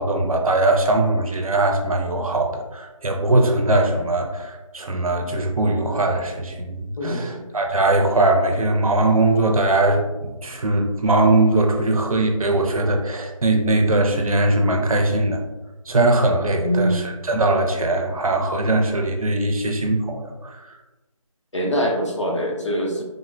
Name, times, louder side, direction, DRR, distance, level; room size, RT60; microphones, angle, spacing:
voice 1, 0.0-15.4 15.9-20.8, right 2 dB, 80° right, 3 dB, 0.6 m, -20 dB
voice 2, 7.0-7.5 16.6-16.9 21.5-23.0, equal, 60° left, -1 dB, 0.7 m, -23 dB
3.7 x 2.0 x 2.5 m, 1.1 s
figure-of-eight pair, 175°, 18 cm